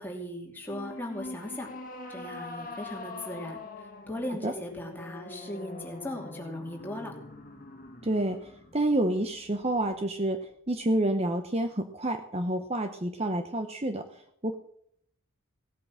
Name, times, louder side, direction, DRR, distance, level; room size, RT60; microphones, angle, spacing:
voice 1, 0.0-1.7 2.1-3.6 4.1-7.1, left 1 dB, 10° left, 0 dB, 2.8 m, -38 dB
sound 1, 0.6-10.0, left 2 dB, 40° left, 1.8 m, -44 dB
voice 2, 8.0-10.4 10.7-14.5, right 1 dB, 30° right, 7 dB, 0.9 m, -29 dB
17.5 x 8.5 x 7.4 m, 0.68 s
head